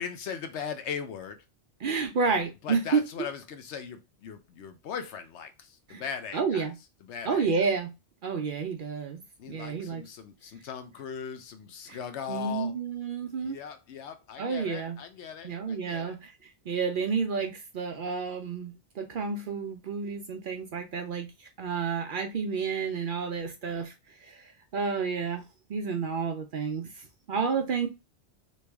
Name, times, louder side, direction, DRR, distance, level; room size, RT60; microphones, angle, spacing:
voice 1, 0.0-1.4 2.6-6.7 7.0-7.5 9.4-12.7 13.4-16.2, left 7 dB, 80° left, 1.0 m, -39 dB
voice 2, 1.8-3.0 5.9-6.0 6.3-6.8 7.2-7.9 8.2-9.2 9.5-10.0 11.9-12.0 12.3-13.6 14.4-15.0 15.4-23.9 24.2-25.4 25.7-27.9, right 5 dB, 60° right, 0.6 m, -30 dB
3.1 x 2.7 x 3.3 m
omnidirectional pair, 1.1 m